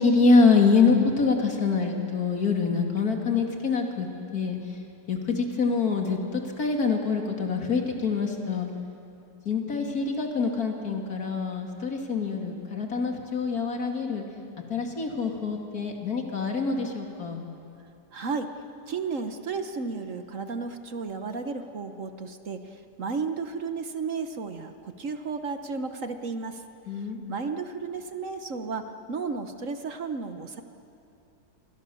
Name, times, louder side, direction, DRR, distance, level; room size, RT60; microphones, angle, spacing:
voice 1, 0.0-4.6 5.1-8.7 9.5-14.2 14.7-17.4 26.9-27.2, left 4 dB, 60° left, 2 dB, 2.9 m, -25 dB
voice 2, 18.1-18.5 18.9-22.7 23.0-26.6 27.3-30.6, right 4 dB, 55° right, 8 dB, 1.4 m, -33 dB
28.0 x 24.0 x 7.1 m, 2.7 s
omnidirectional pair, 1.8 m